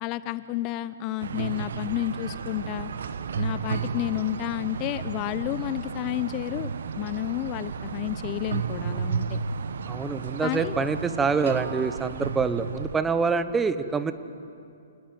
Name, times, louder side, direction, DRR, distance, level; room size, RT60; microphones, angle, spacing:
voice 1, 0.0-2.9 3.4-9.4 10.4-10.8, left 15 dB, 35° left, 15 dB, 0.6 m, -31 dB
sound 1, 1.2-13.0, right 6 dB, 65° right, 1.1 m, -33 dB
voice 2, 9.9-14.1, right 5 dB, 10° right, 12 dB, 0.9 m, -26 dB
28.0 x 20.0 x 7.7 m, 2.5 s
figure-of-eight pair, 125°, 0 cm